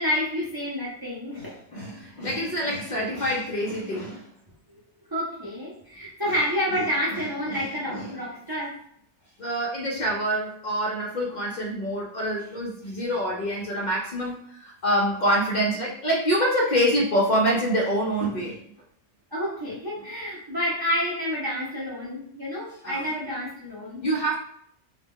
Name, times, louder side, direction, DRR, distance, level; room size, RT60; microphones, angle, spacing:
voice 1, 0.0-1.6 5.1-8.8 19.3-24.0, equal, 30° right, -7 dB, 0.4 m, -29 dB
voice 2, 1.3-4.3 6.2-6.3 7.1-8.2 9.4-18.6 22.7-23.1 24.0-24.3, equal, 55° left, -3 dB, 0.5 m, -26 dB
2.2 x 2.1 x 3.6 m, 0.67 s
omnidirectional pair, 1.3 m